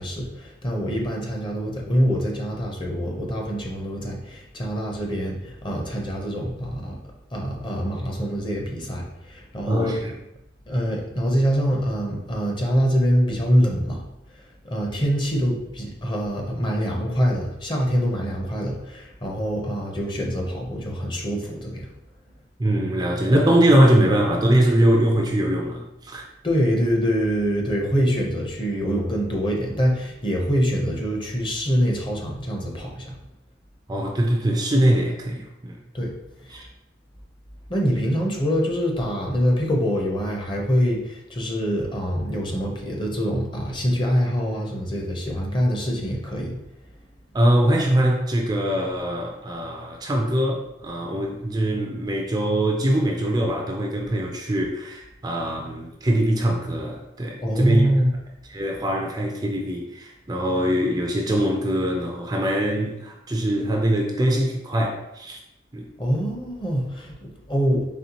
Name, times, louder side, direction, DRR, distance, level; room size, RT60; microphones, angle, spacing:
voice 1, 0.0-7.0 7.3-10.0 10.7-14.0 14.6-21.9 26.4-33.2 35.9-36.1 36.4-36.7 37.7-46.6 57.4-58.1 66.0-67.9, equal, 25° left, -1 dB, 0.7 m, -24 dB
voice 2, 9.7-10.1 22.6-26.2 33.9-35.7 36.5-36.7 47.3-57.9 58.5-65.4 65.7-65.9, right 1 dB, 20° right, 0 dB, 0.4 m, -22 dB
4.2 x 3.2 x 2.9 m, 0.89 s
head